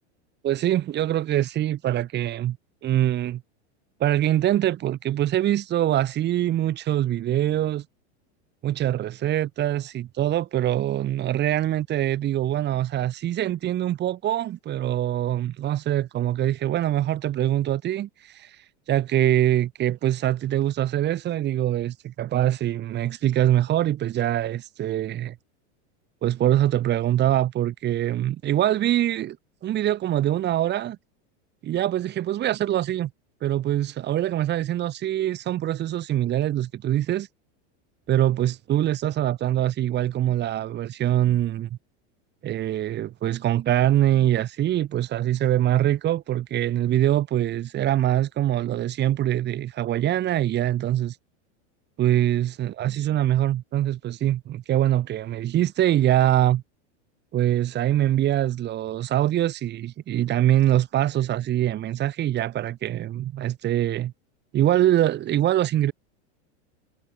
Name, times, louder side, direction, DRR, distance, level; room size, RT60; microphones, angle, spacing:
voice 1, 0.4-2.6 2.8-3.4 4.0-7.8 8.6-25.3 26.2-29.4 29.6-31.0 31.6-33.1 33.4-37.3 38.1-41.7 42.4-51.2 52.0-56.6 57.3-64.1 64.5-65.9, right 12 dB, 30° right, 5.1 m, -23 dB
supercardioid pair, 155°, 36 cm